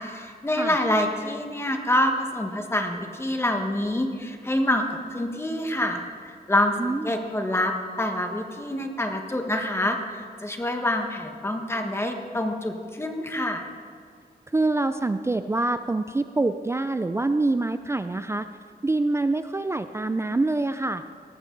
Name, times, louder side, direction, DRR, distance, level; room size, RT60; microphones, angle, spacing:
voice 1, 0.0-4.8 5.1-13.7, left 1 dB, 15° left, 4 dB, 1.4 m, -26 dB
voice 2, 6.8-7.2 14.5-18.5 18.8-21.0, right 2 dB, 15° right, 10 dB, 0.4 m, -25 dB
19.0 x 14.0 x 3.9 m, 2.2 s
wide cardioid pair, 160°, 17 cm